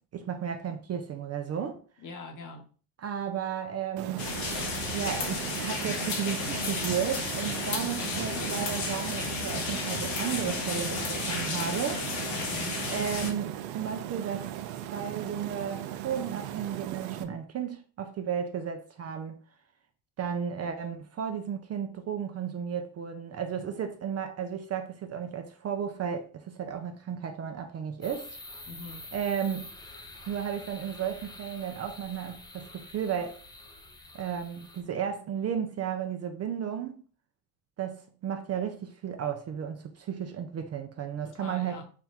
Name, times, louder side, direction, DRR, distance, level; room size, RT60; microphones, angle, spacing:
voice 1, 0.1-1.8 3.0-4.3 4.9-12.1 12.9-14.5 14.9-19.4 20.2-28.4 29.1-29.7 30.3-33.4 34.1-37.0 37.8-41.8, right 8 dB, 35° right, 0.4 m, -34 dB
voice 2, 2.0-2.7 12.3-12.8 28.7-29.1 41.2-41.8, left 3 dB, 45° left, 1.0 m, -43 dB
sound 1, 4.0-17.2, right 11 dB, 80° right, 0.6 m, -38 dB
sound 2, 4.2-13.3, left 4 dB, 80° left, 1.2 m, -33 dB
sound 3, 28.0-34.8, left 2 dB, 10° left, 0.5 m, -47 dB
3.4 x 2.2 x 4.3 m
supercardioid pair, 85°, 45 cm